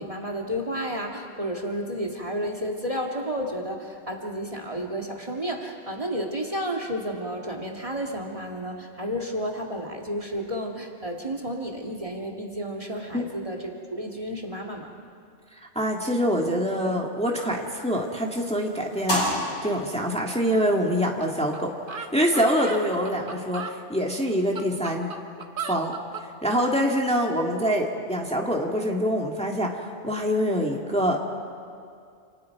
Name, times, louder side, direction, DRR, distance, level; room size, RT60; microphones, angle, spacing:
voice 1, 0.0-14.9, equal, 30° right, 2 dB, 2.0 m, -31 dB
voice 2, 15.6-25.1 25.7-25.9 26.4-31.4, equal, 5° left, 0 dB, 1.8 m, -25 dB
sound 1, 17.5-23.0, equal, 70° left, 5.9 m, -34 dB
sound 2, 21.2-21.3 21.5-21.6 21.9-23.8 24.3-26.3, right 5 dB, 50° right, 1.3 m, -35 dB
28.5 x 28.5 x 4.7 m, 2.3 s
omnidirectional pair, 1.2 m